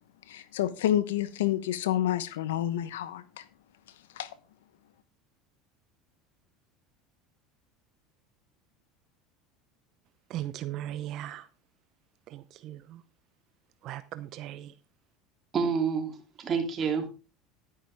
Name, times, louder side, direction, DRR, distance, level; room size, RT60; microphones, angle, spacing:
voice 1, 0.3-3.5 4.2-4.3, left 12 dB, 90° left, 1.0 m, -29 dB
voice 2, 10.3-11.5 12.3-13.0 13.8-14.7, right 13 dB, 55° right, 0.7 m, -38 dB
voice 3, 15.5-17.1, right 6 dB, 35° right, 2.9 m, -28 dB
11.5 x 9.9 x 3.5 m
supercardioid pair, 105°, 0 cm